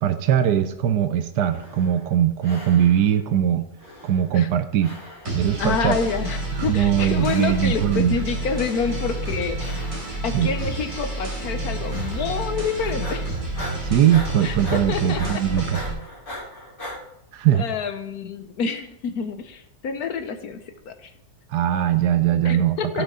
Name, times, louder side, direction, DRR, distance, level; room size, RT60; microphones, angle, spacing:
voice 1, 0.0-3.6 4.0-4.9 5.3-6.0 6.5-8.2 10.3-10.5 13.8-15.8 17.3-17.6 21.5-23.0, right 10 dB, 90° right, 10 dB, 1.3 m, -21 dB
sound 1, 1.4-2.1 2.4-3.2 3.8-4.5 4.8-5.5 6.1-6.8 7.2-7.8 8.4-9.1 9.6-10.3 10.7-11.2 11.9-12.5 12.8-17.0, left 1 dB, 30° left, 2.8 m, -40 dB
sound 2, 5.3-15.9, right 2 dB, 50° right, 3.8 m, -29 dB
voice 2, 5.6-9.8 10.2-13.3 14.4-15.4 17.5-21.1 22.4-23.0, left 5 dB, 70° left, 8 dB, 1.3 m, -28 dB
16.5 x 6.0 x 3.7 m, 0.80 s
omnidirectional pair, 1.7 m